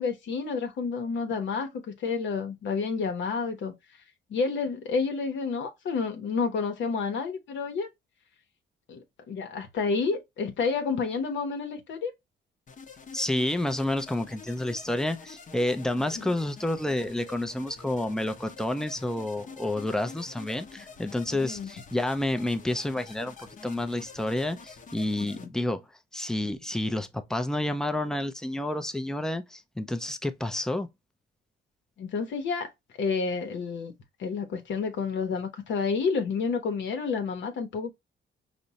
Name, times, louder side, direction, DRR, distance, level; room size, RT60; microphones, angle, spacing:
voice 1, 0.0-3.7 4.3-7.9 8.9-12.1 16.2-16.3 21.4-21.7 25.2-25.5 32.0-32.7 33.0-33.9 34.2-37.9, left 5 dB, 70° left, 0.8 m, -30 dB
sound 1, 12.7-25.5, left 4 dB, 40° left, 0.8 m, -47 dB
voice 2, 13.1-25.8 26.1-30.9, left 1 dB, 5° left, 0.5 m, -29 dB
5.0 x 2.1 x 2.7 m
cardioid pair, 90°, 20 cm